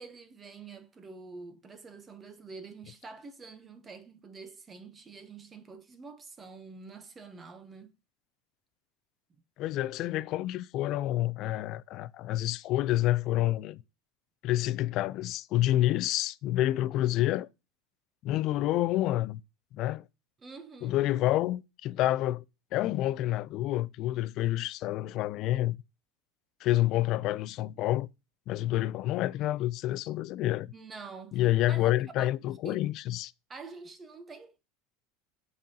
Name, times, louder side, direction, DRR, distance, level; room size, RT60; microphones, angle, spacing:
voice 1, 0.0-7.9 20.4-21.0 30.7-31.4 31.7-32.0 32.6-32.9 33.5-34.6, right 4 dB, 15° right, 0.7 m, -47 dB
voice 2, 9.6-13.8 14.4-17.5 18.2-19.4 19.7-20.0 20.8-22.4 22.7-25.8 26.6-28.1 28.5-30.7 31.3-33.3, left 15 dB, 40° left, 0.3 m, -28 dB
7.6 x 5.3 x 2.8 m
supercardioid pair, 155°, 0 cm